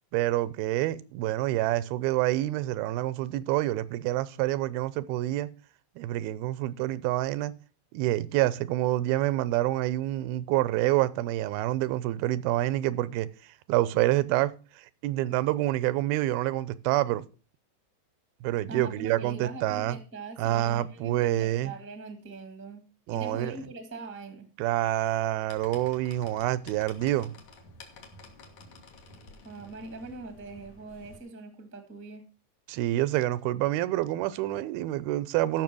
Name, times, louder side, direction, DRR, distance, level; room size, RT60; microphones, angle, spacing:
voice 1, 0.1-5.5 6.0-7.6 7.9-13.3 13.7-17.3 18.4-20.0 20.4-21.7 23.1-23.5 24.6-27.3 32.7-35.6, right 15 dB, 90° right, 2.6 m, -27 dB
voice 2, 18.7-24.5 29.4-32.3, right 3 dB, 10° right, 0.6 m, -42 dB
sound 1, 25.5-31.2, left 3 dB, 60° left, 3.0 m, -51 dB
14.0 x 6.2 x 6.1 m
omnidirectional pair, 4.2 m